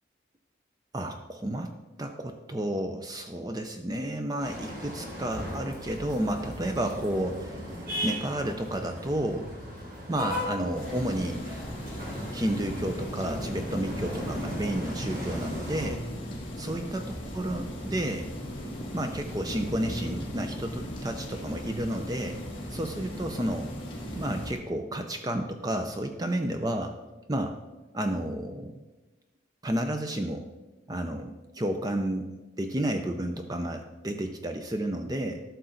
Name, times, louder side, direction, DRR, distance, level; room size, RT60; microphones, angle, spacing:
voice 1, 0.9-1.7 2.0-9.5 10.1-11.5 12.3-16.0 16.6-18.3 18.9-22.4 22.7-23.7 24.2-26.9 27.3-27.6 27.9-28.8 29.6-30.5 30.9-32.3 32.6-35.4, right 1 dB, 20° right, 5 dB, 0.5 m, -31 dB
sound 1, 4.4-15.9, equal, 45° right, 2.3 m, -38 dB
sound 2, 10.7-24.5, equal, 25° left, 1.7 m, -37 dB
12.0 x 6.8 x 3.8 m, 1.1 s
head